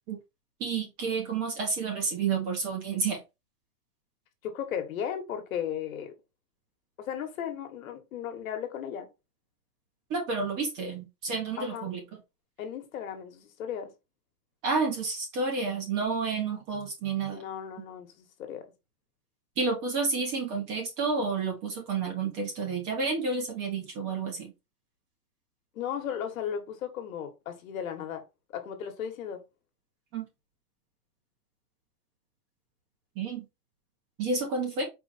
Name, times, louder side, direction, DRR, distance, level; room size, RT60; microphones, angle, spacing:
voice 1, 0.6-3.2 10.1-12.0 14.6-17.4 19.6-24.5 30.1-30.3 33.2-33.4 34.2-34.8, right 4 dB, 25° right, 0.9 m, -30 dB
voice 2, 4.4-6.1 7.0-9.1 11.6-11.9 12.6-13.9 17.3-18.6 25.7-28.2 28.5-29.4, left 8 dB, 60° left, 1.3 m, -35 dB
4.5 x 2.5 x 4.0 m
supercardioid pair, 165°, 46 cm